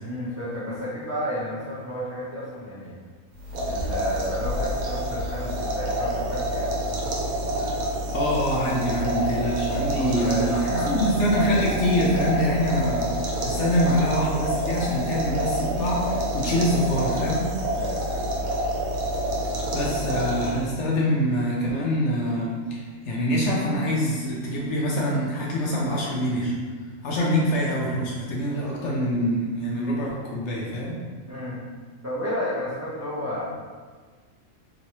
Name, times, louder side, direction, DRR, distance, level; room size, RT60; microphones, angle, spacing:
voice 1, 0.0-3.0 3.6-6.8 10.0-11.0 17.7-18.3 31.3-31.6 32.0-33.4, left 1 dB, 20° right, -10 dB, 0.4 m, -32 dB
sound 1, 3.4-20.8, right 1 dB, 85° right, 1.1 m, -27 dB
voice 2, 8.1-17.5 19.7-26.5 27.0-31.0, equal, 65° left, -4 dB, 0.8 m, -25 dB
3.0 x 3.0 x 2.8 m, 1.5 s
omnidirectional pair, 1.4 m